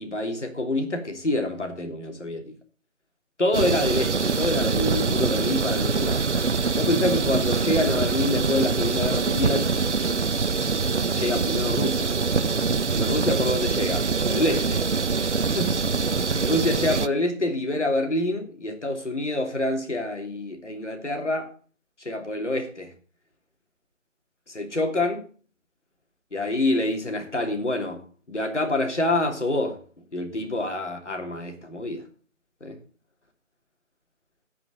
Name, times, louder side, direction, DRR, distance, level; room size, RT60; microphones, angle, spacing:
voice 1, 0.0-2.5 3.4-6.2 6.8-9.7 11.1-12.1 13.0-14.9 15.5-21.5 22.0-22.9 24.5-25.3 26.3-32.0 32.6-32.8, left 1 dB, 65° left, 3.1 m, -27 dB
sound 1, 3.5-17.1, right 4 dB, 60° right, 0.7 m, -24 dB
12.0 x 6.0 x 7.7 m
figure-of-eight pair, 165°, 39 cm